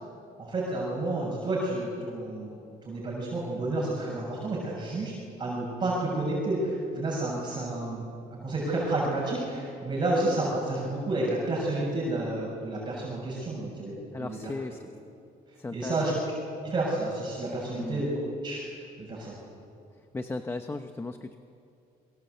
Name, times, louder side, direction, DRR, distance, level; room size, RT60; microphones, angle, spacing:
voice 1, 0.4-5.1 5.4-8.0 8.4-13.9 14.2-14.5 15.7-16.1 16.6-18.2 18.4-18.6 19.0-19.4, right 2 dB, 25° right, -4 dB, 6.8 m, -30 dB
voice 2, 14.1-14.9 15.6-16.2 17.7-18.0 20.1-21.4, left 3 dB, 15° left, 7 dB, 1.0 m, -36 dB
28.0 x 23.5 x 8.0 m, 2.5 s
cardioid pair, 145°, 17 cm